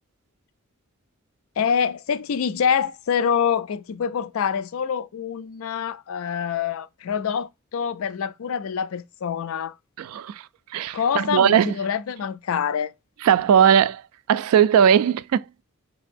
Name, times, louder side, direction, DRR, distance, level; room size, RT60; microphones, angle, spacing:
voice 1, 1.6-9.7 10.9-12.9, left 7 dB, 80° left, 0.4 m, -25 dB
voice 2, 10.0-10.5 10.7-11.8 13.2-14.0 14.3-15.5, right 8 dB, 90° right, 0.3 m, -18 dB
5.3 x 4.0 x 2.5 m
head